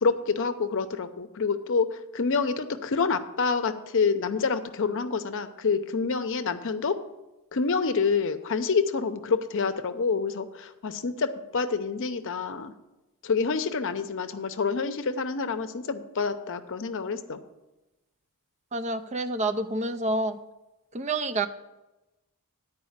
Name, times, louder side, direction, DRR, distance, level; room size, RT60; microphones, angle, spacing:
voice 1, 0.0-7.0 7.5-12.7 13.2-17.4, left 5 dB, 60° left, 9 dB, 0.6 m, -27 dB
voice 2, 18.7-20.4 20.9-21.5, right 2 dB, 30° right, 9 dB, 0.5 m, -28 dB
9.5 x 4.8 x 7.2 m, 1.0 s
head